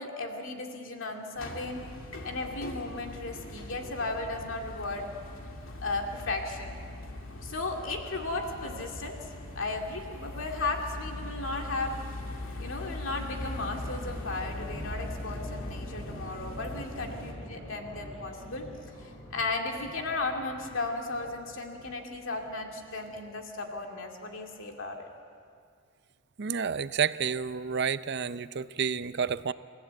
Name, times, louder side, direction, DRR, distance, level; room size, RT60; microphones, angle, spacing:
voice 1, 0.0-1.9 2.2-5.1 5.8-6.8 7.4-9.2 9.5-11.9 12.6-18.7 19.0-25.1, left 3 dB, 70° left, 2 dB, 2.4 m, -35 dB
sound 1, 1.4-17.3, left 2 dB, 90° left, 2.2 m, -41 dB
sound 2, 13.4-23.4 23.6-23.8, equal, 35° left, 5.9 m, -44 dB
voice 2, 26.4-29.5, right 6 dB, 55° right, 14 dB, 0.6 m, -30 dB
28.5 x 15.0 x 8.2 m, 2.3 s
head